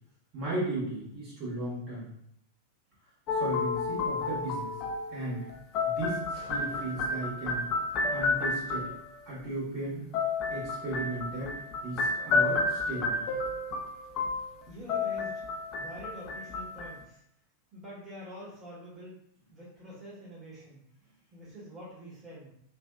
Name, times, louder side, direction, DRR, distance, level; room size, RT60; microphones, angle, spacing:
voice 1, 0.3-2.1 3.3-4.7 5.1-5.4 5.8-7.6 8.1-8.9 9.2-10.0 10.5-11.6 11.8-13.2, right 2 dB, 40° right, -9 dB, 1.3 m, -35 dB
sound 1, 3.3-9.1 10.1-17.0, left 3 dB, 35° left, 0.4 m, -31 dB
sound 2, 6.3-7.4, right 1 dB, 85° right, 1.2 m, -49 dB
voice 2, 14.6-15.4 15.7-17.2 17.7-19.1 19.5-20.8 21.3-22.5, equal, 20° right, -8 dB, 1.4 m, -46 dB
3.3 x 2.3 x 2.3 m, 0.70 s
figure-of-eight pair, 90°, 0 cm